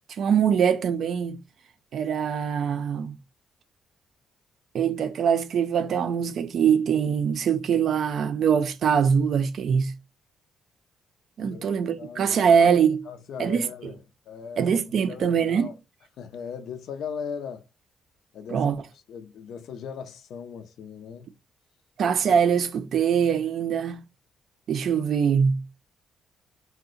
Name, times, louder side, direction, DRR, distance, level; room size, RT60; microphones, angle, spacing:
voice 1, 0.2-1.4 1.9-3.2 4.7-9.9 11.4-13.1 13.4-13.9 14.6-15.7 18.5-18.8 22.0-24.0 24.7-25.6, right 7 dB, 65° right, 0.4 m, -23 dB
voice 2, 11.4-12.4 13.1-14.7 15.1-15.7 16.2-17.7 18.3-18.7 19.1-21.3, left 6 dB, 75° left, 0.4 m, -38 dB
2.7 x 2.1 x 3.7 m
cardioid pair, 90°, 0 cm